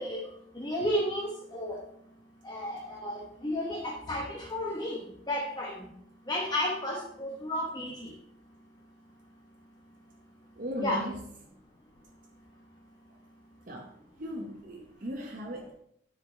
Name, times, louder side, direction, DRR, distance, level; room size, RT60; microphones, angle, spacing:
voice 1, 0.0-1.8 2.4-5.9 6.3-8.1 10.8-11.0, left 1 dB, 20° left, -2 dB, 1.0 m, -33 dB
voice 2, 10.6-11.2 13.7-13.9 14.2-15.7, equal, 45° right, 0 dB, 0.8 m, -37 dB
9.4 x 5.0 x 4.3 m, 0.72 s
head